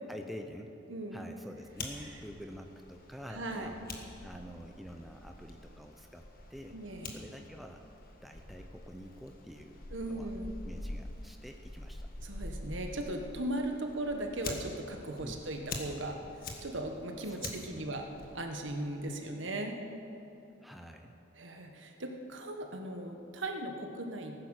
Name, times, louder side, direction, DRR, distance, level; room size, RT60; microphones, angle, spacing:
voice 1, 0.1-0.8 1.1-3.9 4.2-6.2 6.5-6.8 7.1-7.8 8.2-10.3 10.6-12.1 15.2-15.4 17.3-17.9 20.6-21.2, equal, ahead, 3 dB, 0.7 m, -47 dB
voice 2, 0.9-1.2 3.3-3.7 6.7-7.1 9.9-10.5 12.2-16.2 16.6-18.0 18.3-19.8 21.4-24.3, right 1 dB, 70° right, 4 dB, 1.5 m, -38 dB
Fire, 1.6-19.0, left 2 dB, 45° left, 1.6 m, -46 dB
17.5 x 9.8 x 6.6 m, 2.8 s
head